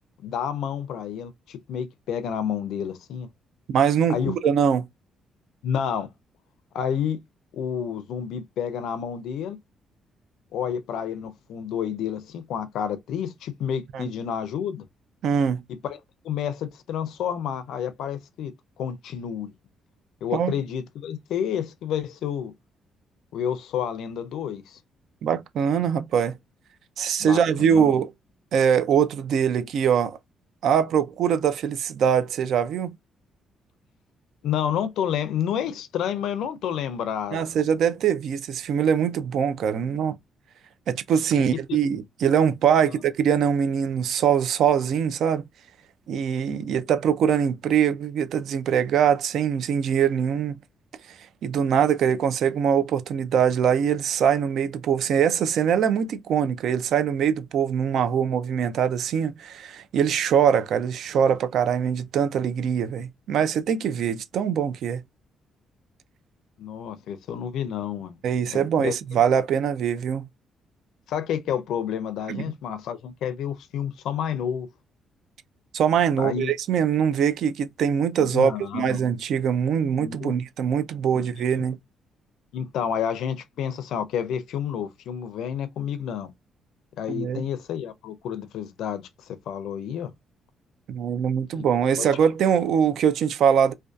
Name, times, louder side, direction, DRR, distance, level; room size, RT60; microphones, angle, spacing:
voice 1, 0.2-3.3 4.1-4.3 5.6-6.1 6.7-7.2 7.5-9.6 10.5-14.8 15.8-16.0 16.2-18.5 18.8-19.5 20.2-22.5 23.3-24.8 27.2-27.9 34.4-37.4 42.8-43.0 46.5-46.7 66.6-68.2 68.5-68.9 71.1-74.7 76.2-76.5 78.3-79.0 80.0-80.4 81.1-81.3 82.5-86.3 87.0-90.1 91.6-91.7 92.0-92.1, left 8 dB, 80° left, 0.4 m, -30 dB
voice 2, 3.7-4.9 13.9-14.1 15.2-15.6 20.3-20.6 25.2-26.3 27.0-28.1 28.5-30.2 30.6-32.9 37.3-40.1 40.9-45.4 46.1-50.6 51.4-65.0 68.2-70.3 72.3-72.4 75.7-81.8 87.1-87.4 90.9-93.7, right 8 dB, 70° right, 0.3 m, -23 dB
2.5 x 2.2 x 2.2 m
cardioid pair, 90°, 0 cm